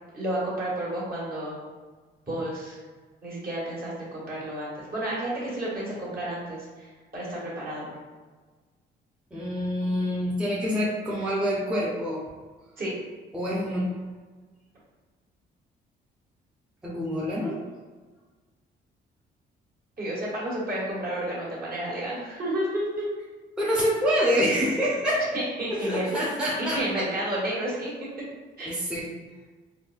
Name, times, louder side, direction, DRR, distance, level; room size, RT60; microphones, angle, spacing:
voice 1, 0.1-1.6 2.3-2.8 3.2-7.9 12.8-12.9 20.0-23.0 25.3-26.1 26.7-27.9 28.6-28.7, right 1 dB, 50° right, -7 dB, 1.5 m, -31 dB
voice 2, 9.3-12.2 13.3-13.9 16.8-17.6 23.6-25.2 25.7-27.0 28.6-29.1, equal, 5° right, -6 dB, 0.6 m, -26 dB
3.9 x 2.1 x 2.4 m, 1.4 s
cardioid pair, 90°, 20 cm